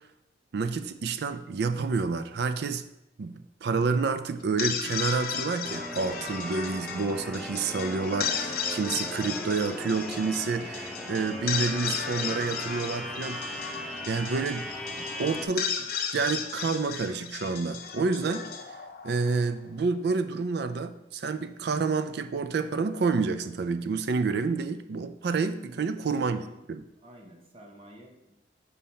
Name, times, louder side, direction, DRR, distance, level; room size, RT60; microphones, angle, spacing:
voice 1, 0.5-2.8 3.2-14.6 15.2-15.7 16.1-18.4 19.0-26.4 26.7-26.8, right 4 dB, 65° right, 11 dB, 0.4 m, -29 dB
sound 1, 4.4-19.7, left 7 dB, 55° left, 0.6 m, -35 dB
sound 2, 5.6-15.5, equal, ahead, 0.5 m, -38 dB
voice 2, 25.7-26.7 27.0-28.4, equal, 30° right, 1 dB, 0.9 m, -50 dB
5.6 x 4.1 x 4.3 m, 0.89 s
head